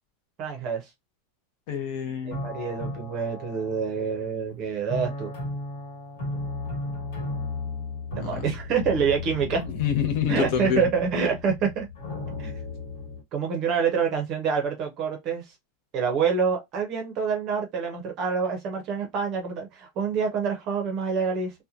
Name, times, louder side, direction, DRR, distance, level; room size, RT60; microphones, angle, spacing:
voice 1, 0.4-0.8 2.3-5.3 8.1-9.6 10.3-11.9 12.4-12.5 13.3-15.4 15.9-21.5, right 6 dB, 30° right, 0.7 m, -27 dB
voice 2, 1.7-2.4 8.2-8.5 9.8-10.9, left 8 dB, 40° left, 0.7 m, -27 dB
sound 1, 2.3-4.3 4.9-13.2, left 3 dB, 65° left, 1.4 m, -35 dB
2.9 x 2.1 x 2.4 m
supercardioid pair, 175°, 0 cm